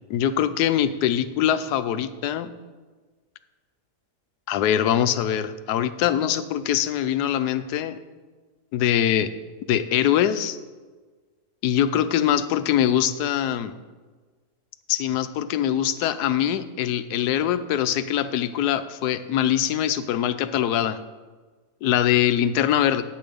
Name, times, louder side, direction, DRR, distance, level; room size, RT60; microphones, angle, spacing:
voice 1, 0.1-2.5 4.5-8.0 8.7-9.3 9.7-10.6 11.6-13.8 14.9-21.0 21.8-23.0, left 10 dB, 80° left, 12 dB, 1.1 m, -23 dB
9.3 x 7.7 x 5.1 m, 1.4 s
omnidirectional pair, 1.7 m